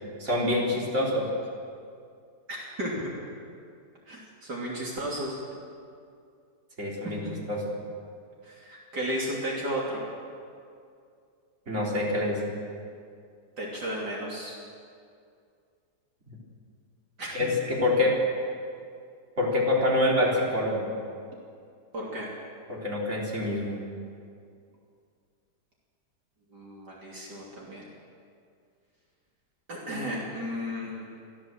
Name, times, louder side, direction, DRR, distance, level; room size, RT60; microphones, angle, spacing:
voice 1, 0.2-1.3 6.8-7.2 7.5-7.6 11.7-12.4 16.3-16.4 17.3-18.1 19.4-20.8 22.7-23.8, left 1 dB, 40° right, -3 dB, 4.2 m, -26 dB
voice 2, 2.5-3.1 4.1-5.4 7.0-7.3 8.4-10.0 13.6-14.6 17.2-17.5 21.9-22.3 26.5-27.8 29.7-31.1, equal, 65° right, -4 dB, 3.6 m, -34 dB
24.5 x 15.0 x 7.6 m, 2.3 s
omnidirectional pair, 1.9 m